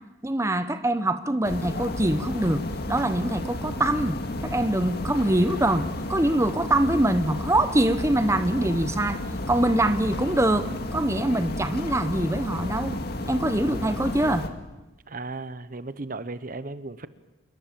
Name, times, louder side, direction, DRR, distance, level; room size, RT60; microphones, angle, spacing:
voice 1, 0.2-2.6 2.9-13.0 13.3-14.4, right 1 dB, 15° right, 10 dB, 0.9 m, -24 dB
sound 1, 1.4-14.5, left 1 dB, 55° left, 2.0 m, -32 dB
voice 2, 15.1-17.1, right 3 dB, 45° right, 13 dB, 1.0 m, -35 dB
27.5 x 22.5 x 7.6 m, 1.1 s
head